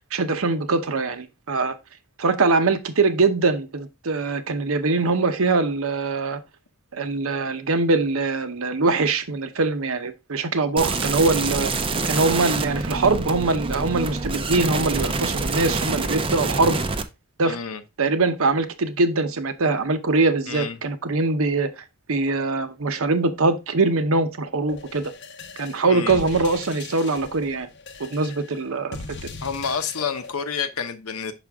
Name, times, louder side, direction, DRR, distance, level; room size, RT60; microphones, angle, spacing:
voice 1, 0.0-1.8 2.2-6.4 6.9-11.7 12.0-16.8 17.4-17.6 18.0-25.1 25.6-27.7 28.0-29.0, right 3 dB, 70° right, 0.8 m, -22 dB
sound 1, 10.8-17.0, right 3 dB, 25° right, 0.5 m, -26 dB
voice 2, 11.7-12.2 17.4-17.8 20.5-20.8 25.9-26.2 29.4-31.3, left 6 dB, 85° left, 0.8 m, -29 dB
sound 2, 24.7-30.3, left 4 dB, 55° left, 0.7 m, -39 dB
6.0 x 5.1 x 3.5 m
head